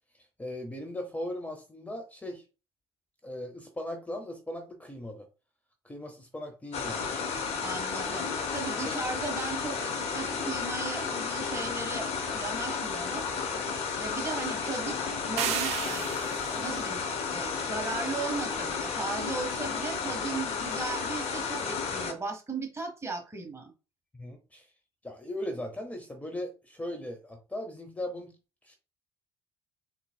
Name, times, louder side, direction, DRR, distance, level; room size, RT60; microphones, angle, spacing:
voice 1, 0.4-2.4 3.2-5.3 5.8-7.2 8.8-9.3 24.1-24.7 25.0-28.3 28.6-28.8, left 1 dB, 10° left, 5 dB, 0.8 m, -38 dB
sound 1, 6.7-22.1, left 5 dB, 50° left, 1.0 m, -32 dB
voice 2, 7.6-13.3 14.0-16.1 16.5-17.0 17.3-23.7, right 3 dB, 20° right, 4 dB, 1.3 m, -37 dB
sound 2, 15.4-16.6, right 10 dB, 60° right, 0.5 m, -32 dB
3.9 x 3.7 x 2.3 m, 0.31 s
figure-of-eight pair, 55°, 13 cm